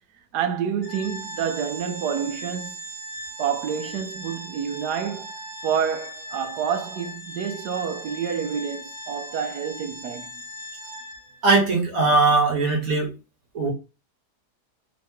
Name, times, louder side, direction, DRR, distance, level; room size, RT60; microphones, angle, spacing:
voice 1, 0.3-2.8 3.4-10.3, right 7 dB, 85° right, 1.3 m, -28 dB
Organ, 0.8-11.5, right 1 dB, 30° right, 1.2 m, -38 dB
voice 2, 11.4-13.1 13.5-13.7, right 3 dB, 60° right, 1.5 m, -20 dB
3.6 x 2.9 x 3.6 m
omnidirectional pair, 1.7 m